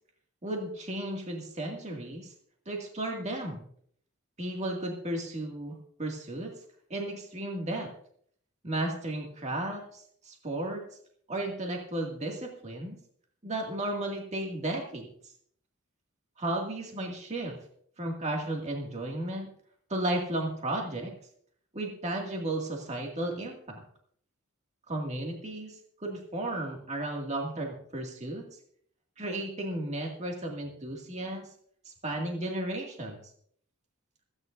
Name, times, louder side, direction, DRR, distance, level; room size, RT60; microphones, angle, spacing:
voice 1, 0.4-2.3 2.7-3.6 4.4-6.5 6.9-7.9 8.6-10.8 11.3-13.0 13.4-15.1 16.4-17.6 18.0-19.5 19.9-21.1 21.7-23.8 24.9-28.4 29.2-31.5 31.9-33.2, right 1 dB, 30° right, 0 dB, 2.2 m, -34 dB
26.5 x 9.9 x 2.6 m, 0.63 s
head